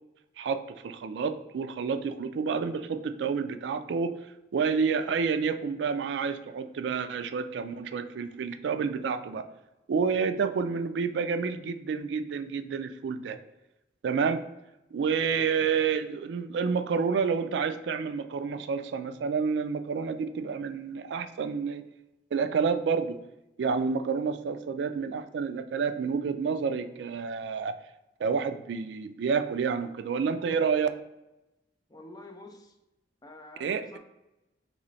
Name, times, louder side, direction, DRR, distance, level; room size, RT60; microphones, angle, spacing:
voice 1, 0.4-4.1 4.5-9.5 9.9-13.4 14.0-14.4 14.9-21.8 22.3-23.2 23.6-27.8 28.2-30.9 33.6-34.0, right 5 dB, 70° right, 9 dB, 0.3 m, -29 dB
voice 2, 31.9-32.8 33.2-34.0, left 2 dB, 20° left, 4 dB, 0.4 m, -48 dB
3.1 x 3.1 x 3.9 m, 0.96 s
head